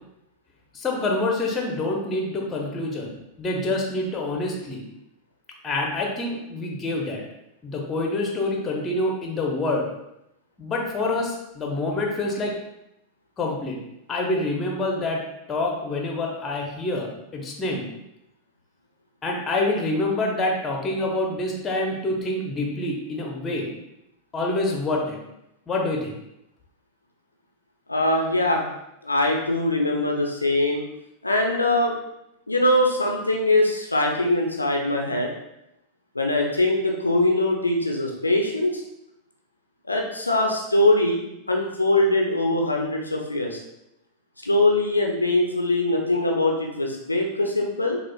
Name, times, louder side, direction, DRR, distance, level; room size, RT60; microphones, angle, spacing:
voice 1, 0.7-3.1 3.4-4.8 5.6-7.2 7.6-9.9 10.6-12.5 13.4-13.8 14.1-15.2 15.5-17.9 19.2-23.7 24.3-25.2 25.7-26.1, left 2 dB, 20° left, 0 dB, 0.8 m, -26 dB
voice 2, 27.9-28.6 29.0-30.8 31.2-31.9 32.5-35.3 36.1-38.8 39.9-41.2 41.5-43.6 44.4-48.0, left 1 dB, 80° left, 1 dB, 0.5 m, -22 dB
6.2 x 2.4 x 2.3 m, 0.84 s
figure-of-eight pair, 90°, 0 cm